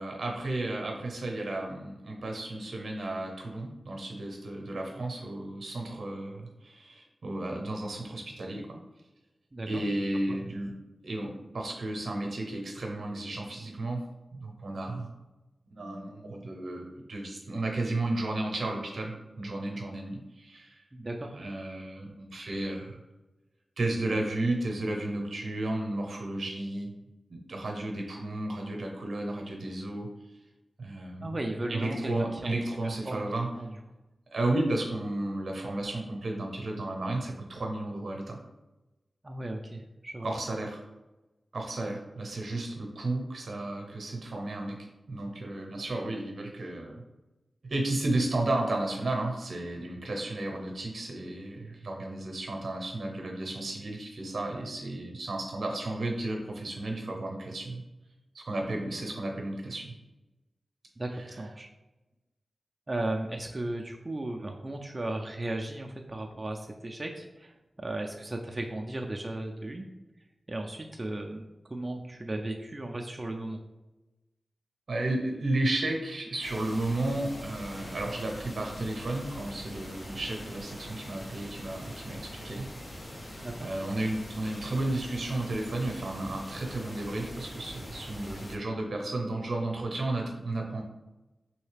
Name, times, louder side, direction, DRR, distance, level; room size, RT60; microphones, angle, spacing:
voice 1, 0.0-8.8 9.7-10.8 11.0-15.1 15.7-20.8 21.3-23.0 23.8-26.9 27.3-30.1 30.8-31.4 31.7-33.5 34.3-38.4 40.2-40.8 41.5-44.8 45.1-47.0 47.6-57.8 58.3-59.9 61.1-61.5 74.9-82.7 83.6-90.8, right 2 dB, 75° right, 1 dB, 0.7 m, -33 dB
voice 2, 9.5-9.8 10.3-10.4 20.9-21.4 31.2-32.5 32.8-33.2 33.6-33.8 39.2-40.3 58.7-58.8 61.0-61.7 62.9-69.9 70.5-73.6 83.4-83.7, right 1 dB, 30° right, 2 dB, 0.3 m, -36 dB
sound 1, 76.4-88.6, equal, 45° left, 1.1 m, -43 dB
3.1 x 2.7 x 3.3 m, 1.0 s
wide cardioid pair, 75°, 0 cm